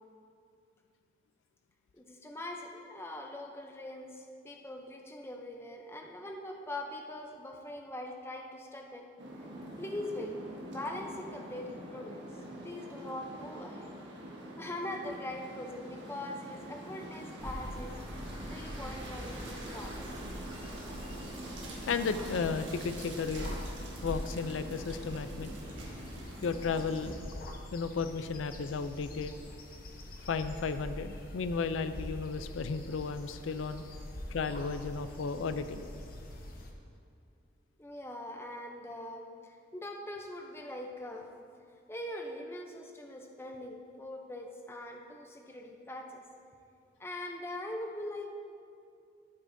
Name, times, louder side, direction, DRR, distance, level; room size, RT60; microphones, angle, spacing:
voice 1, 1.9-9.1 9.8-10.4 10.7-12.3 12.6-13.9 14.6-18.0 18.5-20.0 37.8-41.3 41.9-46.2 47.0-48.3, left 1 dB, 10° left, 2 dB, 0.6 m, -42 dB
sound 1, 9.2-27.1, right 1 dB, 75° right, 1.7 m, -45 dB
sound 2, 17.4-36.7, left 1 dB, 45° left, 0.8 m, -44 dB
voice 2, 21.9-23.6 24.0-25.5 26.4-27.2 27.7-29.3 30.3-33.8 34.3-35.9, left 5 dB, 85° left, 11 dB, 0.4 m, -34 dB
14.0 x 7.8 x 2.7 m, 2.4 s
head